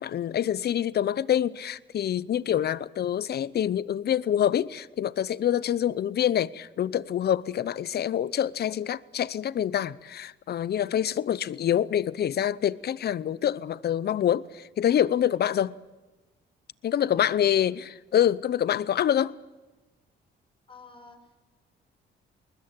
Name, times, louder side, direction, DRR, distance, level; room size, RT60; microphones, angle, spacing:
voice 1, 0.0-15.7 16.8-19.3, left 10 dB, 55° left, 0.7 m, -26 dB
voice 2, 16.9-17.4 20.7-21.4, left 3 dB, 25° left, 5.5 m, -50 dB
21.0 x 20.5 x 8.8 m
cardioid pair, 90°, 20 cm